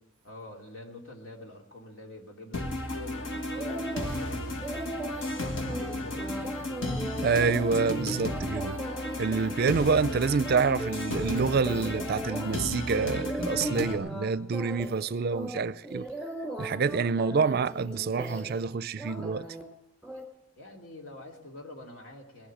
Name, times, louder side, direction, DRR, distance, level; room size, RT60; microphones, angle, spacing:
voice 1, 0.2-6.5 20.6-22.5, left 1 dB, 85° left, 2.8 m, -46 dB
sound 1, 2.5-14.0, left 1 dB, 65° left, 1.6 m, -34 dB
sound 2, 3.6-4.3 4.6-12.6 13.0-14.3 14.5-15.0 15.3-18.7 19.0-19.6 20.0-20.2, right 1 dB, 5° left, 2.8 m, -38 dB
voice 2, 7.2-8.8 9.2-16.1 16.6-19.5, right 5 dB, 50° right, 0.4 m, -27 dB
20.5 x 7.9 x 8.5 m
head